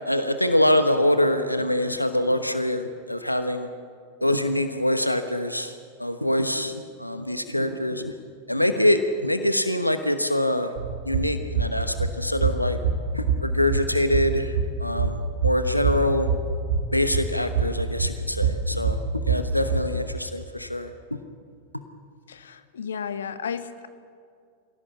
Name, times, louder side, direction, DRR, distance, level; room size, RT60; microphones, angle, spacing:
voice 1, 0.0-3.7 4.2-5.7 6.0-8.1 8.5-10.7 11.0-12.8 13.1-16.3 16.9-19.0 19.2-21.2, left 1 dB, 90° left, 9 dB, 1.0 m, -24 dB
sound 1, 10.8-19.9, right 4 dB, 55° right, 2.7 m, -26 dB
voice 2, 22.3-23.9, left 7 dB, 65° left, 11 dB, 1.2 m, -33 dB
25.5 x 17.0 x 8.5 m, 2.3 s
figure-of-eight pair, 90°, 0 cm